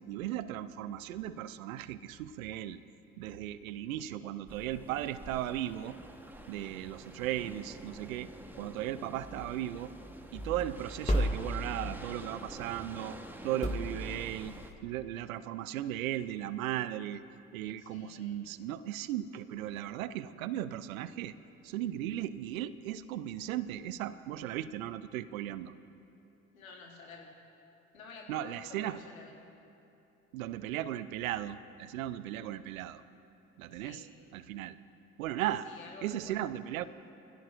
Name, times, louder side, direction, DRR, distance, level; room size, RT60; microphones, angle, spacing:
voice 1, 0.0-2.8 3.2-5.9 6.5-9.9 10.3-13.2 13.4-14.5 14.8-17.2 17.5-21.3 21.6-25.7 28.3-29.0 30.3-33.0 33.6-34.1 34.3-34.8 35.2-35.7 36.0-36.8, right 12 dB, 80° right, 15 dB, 0.6 m, -36 dB
sound 1, 4.5-14.7, right 1 dB, 5° right, 1.3 m, -48 dB
sound 2, 9.2-12.4 13.6-14.7, equal, 15° left, 2.1 m, -35 dB
voice 2, 17.8-18.5 26.5-27.4 27.9-29.4 33.7-34.1 35.6-36.5, left 4 dB, 90° left, 1 dB, 1.6 m, -51 dB
25.0 x 16.5 x 2.6 m, 2.9 s
hypercardioid pair, 50°, 40 cm